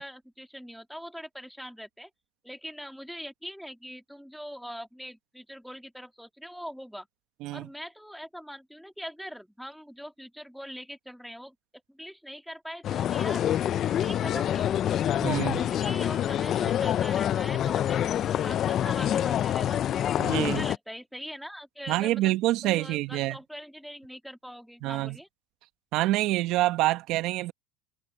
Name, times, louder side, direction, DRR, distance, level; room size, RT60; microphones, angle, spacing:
voice 1, 0.0-2.1 2.4-7.1 7.5-11.5 11.9-13.5 13.8-15.0 15.5-20.1 20.5-22.3 22.6-25.3, equal, ahead, 2.4 m, -42 dB
sound 1, 12.8-20.8, left 10 dB, 40° left, 0.4 m, -26 dB
voice 2, 15.2-15.6 20.2-20.6 21.9-23.4 24.8-25.2 25.9-27.5, right 17 dB, 55° right, 1.3 m, -26 dB
supercardioid pair, 105°, 0 cm